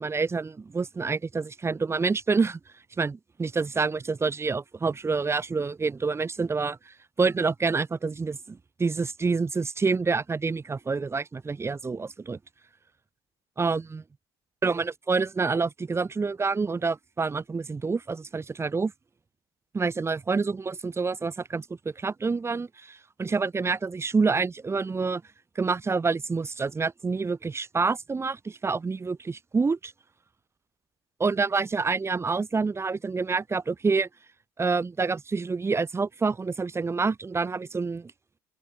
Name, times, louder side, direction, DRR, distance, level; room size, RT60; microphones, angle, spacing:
voice 1, 0.0-2.6 3.0-12.4 13.6-14.0 14.6-18.9 19.7-21.7 21.9-25.2 25.5-29.9 31.2-34.1 34.6-38.1, right 4 dB, 20° right, 1.5 m, -27 dB
open air
supercardioid pair, 85°, 12 cm